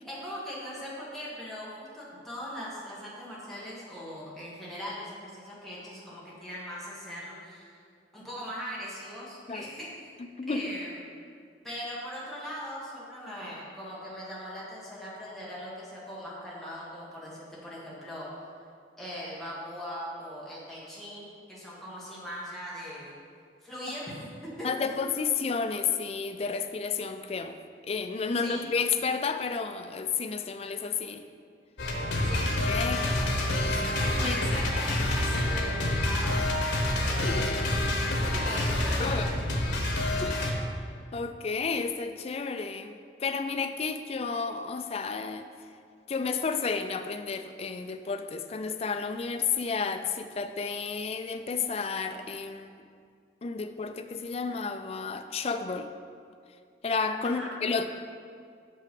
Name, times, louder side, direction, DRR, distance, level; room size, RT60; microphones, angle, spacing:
voice 1, 0.0-7.8 8.1-10.1 10.5-10.9 11.6-18.3 19.0-23.1 23.6-25.2 28.4-28.7 32.2-32.5 32.8-33.4 33.9-36.6 37.0-39.4 39.9-40.3 57.2-57.5, equal, ahead, -8 dB, 1.5 m, -40 dB
voice 2, 10.4-10.8 24.6-27.6 27.9-31.2 32.7-33.2 33.7-33.9 34.2-34.4 37.2-37.5 39.0-39.4 40.2-40.5 41.1-42.9 43.2-45.5 46.1-52.7 53.4-55.9 56.8-57.9, left 5 dB, 35° left, 8 dB, 0.3 m, -31 dB
sound 1, 31.8-40.5, left 1 dB, 90° left, 1.0 m, -27 dB
6.1 x 5.5 x 5.2 m, 2.2 s
head